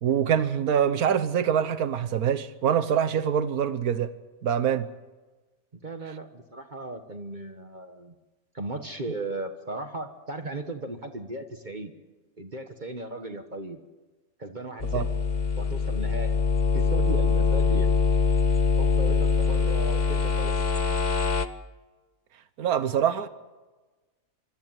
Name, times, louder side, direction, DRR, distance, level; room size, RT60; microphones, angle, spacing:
voice 1, 0.0-4.1 4.4-4.9 14.9-15.1 22.6-23.3, right 8 dB, 80° right, 1.5 m, -24 dB
voice 2, 5.7-8.1 8.5-11.9 12.4-13.8 14.4-15.1 15.6-16.4 16.7-17.9 18.8-20.5, right 2 dB, 35° right, 1.4 m, -36 dB
sound 1, 14.8-21.5, left 5 dB, 35° left, 0.9 m, -23 dB
25.5 x 14.0 x 9.0 m
omnidirectional pair, 1.6 m